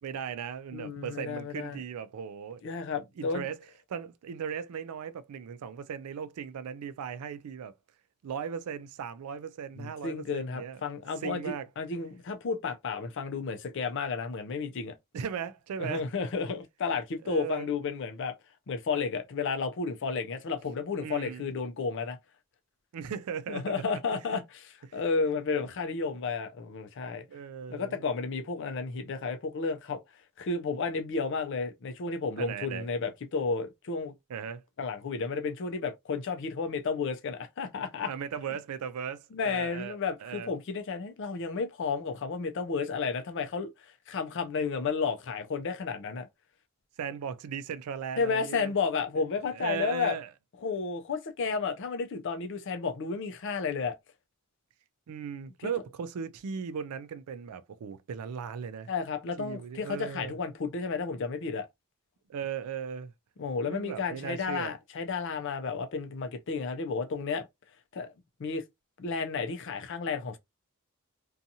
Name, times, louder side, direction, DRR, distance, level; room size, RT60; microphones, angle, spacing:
voice 1, 0.0-2.6 3.2-3.6 3.9-7.7 8.2-10.8 11.2-11.7 15.1-16.1 17.2-17.7 21.0-21.5 22.9-24.0 24.8-25.0 27.3-28.0 32.4-32.9 34.3-34.6 38.1-40.5 47.0-48.7 49.5-50.3 55.1-58.9 59.4-60.4 62.3-63.1 63.6-64.7, right 7 dB, 85° right, 0.4 m, -37 dB
voice 2, 0.7-1.8 2.6-3.5 9.8-14.9 15.8-18.3 18.7-22.2 23.5-27.2 27.7-30.0 30.4-34.1 34.8-38.1 39.3-46.3 48.2-50.2 50.6-54.0 58.9-61.7 63.4-67.5 67.9-68.1 68.4-68.6 69.0-70.4, left 4 dB, 55° left, 0.4 m, -32 dB
2.6 x 2.3 x 2.7 m
head